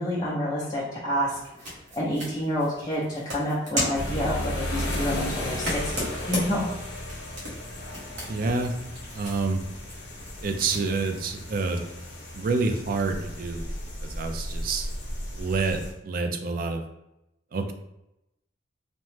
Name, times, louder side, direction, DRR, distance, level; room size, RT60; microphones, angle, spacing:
voice 1, 0.0-1.4 1.9-6.7, equal, 20° left, -8 dB, 0.5 m, -28 dB
sound 1, 1.2-10.8, equal, 85° right, 1.1 m, -37 dB
sound 2, 3.9-15.9, equal, 75° left, 0.8 m, -35 dB
voice 2, 8.3-8.7 9.1-9.6 10.4-11.8 12.3-13.6 14.0-14.9 15.3-16.8 17.5-17.7, right 3 dB, 50° right, 5 dB, 0.3 m, -28 dB
2.8 x 2.1 x 3.1 m, 0.87 s
head